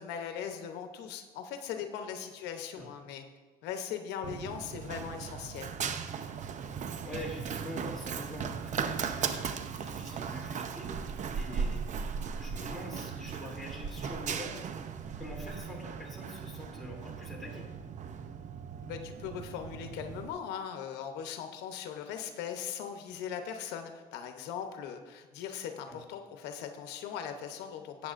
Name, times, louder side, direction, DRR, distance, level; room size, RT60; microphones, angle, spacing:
voice 1, 0.0-3.2 3.6-5.7 18.8-28.1, left 8 dB, 90° left, 6 dB, 0.9 m, -39 dB
Run, 4.2-20.3, right 6 dB, 45° right, 0.6 m, -37 dB
voice 2, 7.0-10.9 11.3-11.9 12.4-14.6 15.2-17.7 25.8-26.0, left 1 dB, ahead, -4 dB, 2.9 m, -44 dB
13.5 x 8.7 x 2.5 m, 1.4 s
cardioid pair, 110°, 17 cm